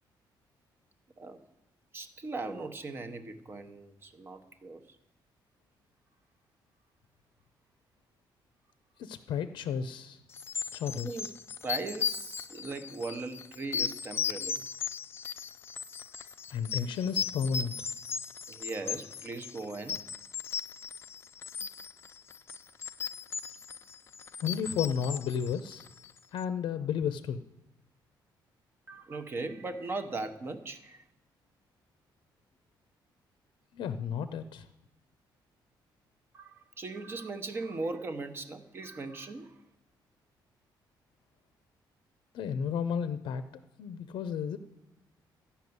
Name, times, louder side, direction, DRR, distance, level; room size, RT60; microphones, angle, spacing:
voice 1, 1.9-4.8 10.9-11.3 11.6-14.7 18.5-20.0 28.9-31.0 36.3-39.6, right 3 dB, 25° right, 8 dB, 0.9 m, -39 dB
voice 2, 9.0-10.2 10.7-11.1 16.5-17.9 24.4-25.9 26.3-27.4 33.7-34.7 42.3-43.4 43.8-44.6, left 7 dB, 75° left, 10 dB, 0.6 m, -32 dB
sound 1, 10.3-26.2, left 7 dB, 30° left, 0.3 m, -37 dB
13.5 x 5.8 x 9.4 m, 0.91 s
cardioid pair, 165°, 8 cm